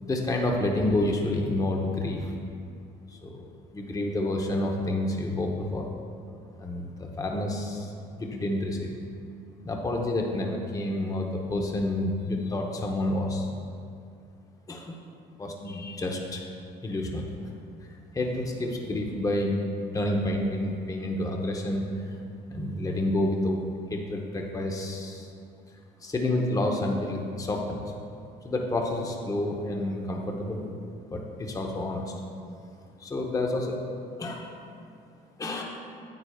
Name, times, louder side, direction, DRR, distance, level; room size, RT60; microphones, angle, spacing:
voice 1, 0.0-2.3 3.2-3.5 3.7-5.8 6.6-8.9 9.6-13.5 14.7-15.0 15.4-16.5 16.8-17.3 18.1-19.6 19.9-21.9 22.5-23.6 23.9-25.3 26.0-27.8 28.4-30.7 31.1-32.0 33.0-33.8 34.2-34.5 35.4-35.6, left 1 dB, 20° left, 1 dB, 0.9 m, -29 dB
9.2 x 8.5 x 2.4 m, 2.4 s
cardioid pair, 110°, 17 cm